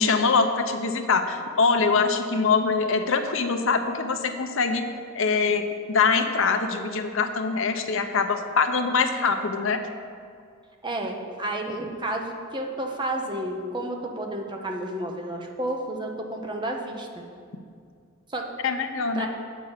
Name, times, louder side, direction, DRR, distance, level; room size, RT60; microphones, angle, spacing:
voice 1, 0.0-4.9 5.1-9.8 18.6-19.3, left 4 dB, 65° left, 6 dB, 0.8 m, -23 dB
voice 2, 10.8-17.2 18.3-18.5 19.1-19.3, right 1 dB, 20° right, 2 dB, 0.9 m, -31 dB
8.2 x 6.3 x 7.3 m, 2.2 s
head